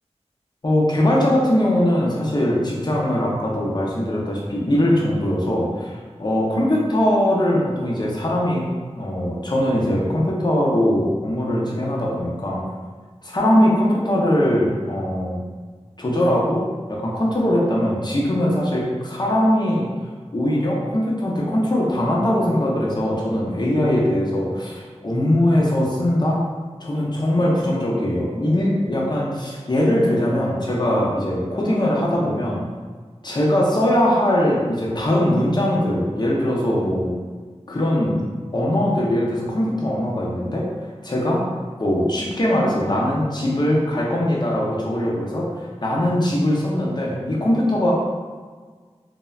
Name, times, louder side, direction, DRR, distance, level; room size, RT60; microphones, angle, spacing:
voice 1, 0.6-8.7 9.0-12.6 13.2-15.4 16.0-16.6 16.9-19.9 20.3-26.5 26.8-32.6 33.2-37.1 37.7-38.2 38.5-40.7 41.0-41.5 41.8-47.9, left 1 dB, 40° left, -4 dB, 0.6 m, -21 dB
3.1 x 2.1 x 2.3 m, 1.5 s
wide cardioid pair, 55°, 11 cm